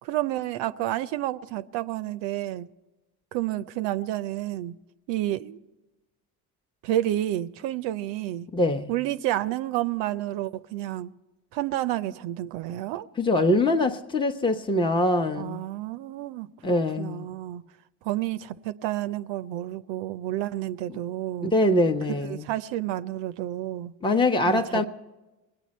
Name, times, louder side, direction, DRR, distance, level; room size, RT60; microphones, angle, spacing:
voice 1, 0.0-2.7 3.3-4.8 5.1-5.6 6.8-8.5 8.9-11.1 11.5-13.1 15.4-17.6 18.0-21.5 22.2-23.9 24.5-24.8, right 14 dB, 65° right, 0.6 m, -30 dB
voice 2, 8.5-8.9 13.2-15.6 16.6-17.3 20.9-21.0 21.4-22.5 24.0-24.8, left 1 dB, 10° left, 0.8 m, -23 dB
22.0 x 8.9 x 4.2 m
hypercardioid pair, 55°, 47 cm